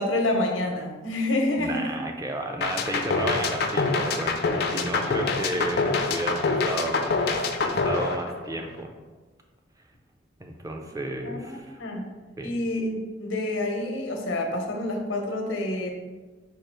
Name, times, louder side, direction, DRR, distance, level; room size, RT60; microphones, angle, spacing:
voice 1, 0.0-2.0 5.0-5.3 11.2-12.0 12.4-15.9, left 1 dB, 85° left, 2 dB, 0.8 m, -28 dB
voice 2, 1.6-8.9 10.4-11.8 12.4-12.5, right 1 dB, 15° right, 3 dB, 0.4 m, -33 dB
sound 1, 2.6-8.8, left 3 dB, 55° left, 0.4 m, -25 dB
4.8 x 2.4 x 4.5 m, 1.3 s
head